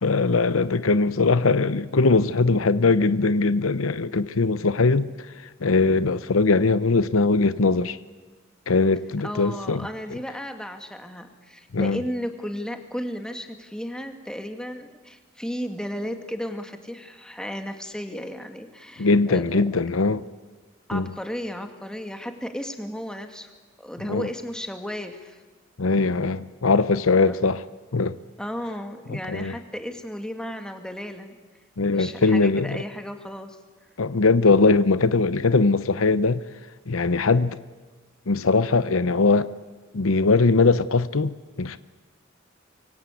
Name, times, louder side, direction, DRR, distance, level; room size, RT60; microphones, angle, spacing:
voice 1, 0.0-5.1 5.4-8.0 8.7-9.9 11.7-12.0 19.0-20.2 20.9-21.1 24.1-24.3 25.8-27.6 27.9-28.2 29.1-29.6 31.8-32.8 34.0-36.4 36.9-37.6 38.3-39.5 39.9-41.8, left 3 dB, 85° left, 0.8 m, -21 dB
voice 2, 9.2-19.8 20.9-23.5 23.8-25.4 27.2-27.4 28.4-31.4 31.9-33.6, equal, 5° left, 2.1 m, -34 dB
25.5 x 23.5 x 8.4 m
head